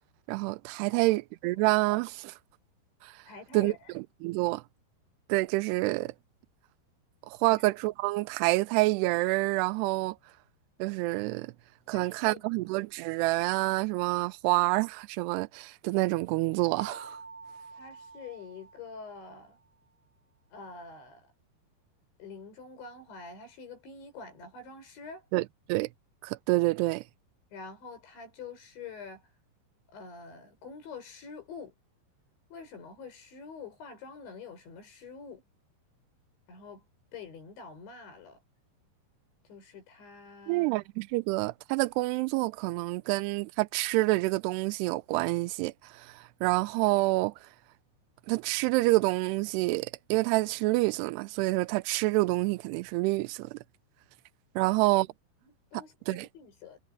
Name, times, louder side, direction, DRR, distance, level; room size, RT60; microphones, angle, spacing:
voice 1, 0.3-2.3 3.5-4.6 5.3-6.1 7.3-10.2 10.8-11.5 11.9-17.1 25.3-25.9 26.2-27.0 40.5-45.7 46.4-47.3 48.3-53.5 54.6-55.1 56.1-56.3, right 22 dB, 85° right, 2.4 m, -27 dB
voice 2, 3.3-3.9 7.5-7.6 11.9-12.4 17.8-19.6 20.5-21.3 22.2-25.2 27.5-29.2 29.9-31.7 32.5-35.4 36.5-36.8 37.1-38.4 39.5-40.8 54.6-54.8 55.4-56.8, left 5 dB, 75° left, 9.0 m, -46 dB
sound 1, 16.8-19.6, right 4 dB, 15° right, 5.9 m, -48 dB
omnidirectional pair, 5.3 m